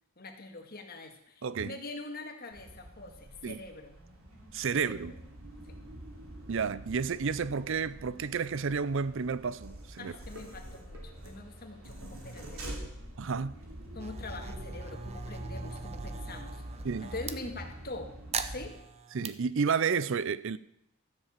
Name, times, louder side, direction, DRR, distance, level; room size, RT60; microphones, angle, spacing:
voice 1, 0.2-4.0 4.7-5.2 5.7-5.8 10.0-12.9 13.9-16.6 17.0-18.1 18.5-18.8, left 2 dB, 45° left, 1.9 m, -44 dB
voice 2, 1.4-1.7 3.4-3.6 4.5-5.1 6.5-10.1 13.2-13.5 16.8-17.1 19.1-20.6, right 5 dB, 65° right, 0.5 m, -31 dB
sound 1, 2.5-18.7, right 1 dB, 85° right, 3.1 m, -45 dB
sound 2, 14.0-17.4 18.3-19.3, right 6 dB, 30° right, 0.7 m, -41 dB
14.0 x 7.6 x 7.4 m
head